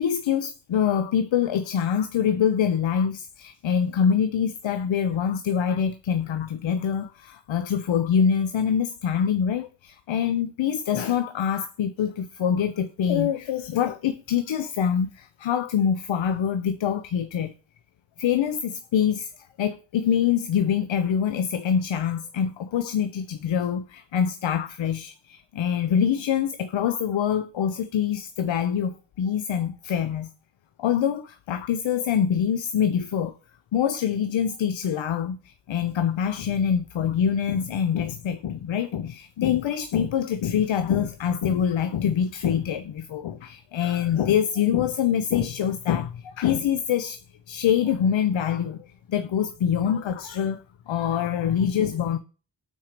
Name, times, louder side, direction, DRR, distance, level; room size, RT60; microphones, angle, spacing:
voice 1, 0.0-17.5 18.2-30.3 30.8-33.3 33.7-47.2 47.5-52.2, left 8 dB, 90° left, 0.5 m, -25 dB
5.8 x 4.5 x 5.0 m
wide cardioid pair, 55°, 45 cm